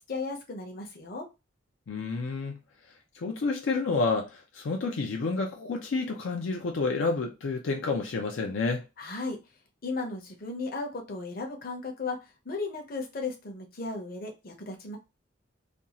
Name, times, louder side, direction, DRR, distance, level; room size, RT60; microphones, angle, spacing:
voice 1, 0.1-1.3 9.0-9.4 9.8-12.2 12.4-15.0, left 3 dB, 50° left, 0.7 m, -35 dB
voice 2, 1.9-2.6 3.2-8.8, left 3 dB, 85° left, 0.4 m, -29 dB
2.6 x 2.3 x 2.8 m
head